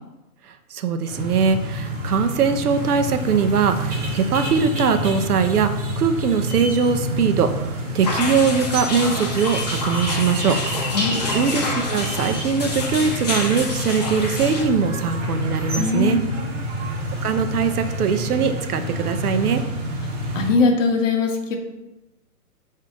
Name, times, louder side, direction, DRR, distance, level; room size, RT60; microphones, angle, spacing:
voice 1, 0.7-10.6 11.3-16.2 17.2-19.6, right 6 dB, 75° right, 8 dB, 0.6 m, -21 dB
sound 1, 1.1-20.5, right 1 dB, 50° right, 1.1 m, -28 dB
sound 2, 8.0-14.6, left 3 dB, 30° left, 0.5 m, -28 dB
voice 2, 15.8-16.5 20.3-21.6, left 4 dB, 55° left, 3 dB, 0.9 m, -21 dB
5.0 x 2.7 x 3.5 m, 1.0 s
hypercardioid pair, 150°, 46 cm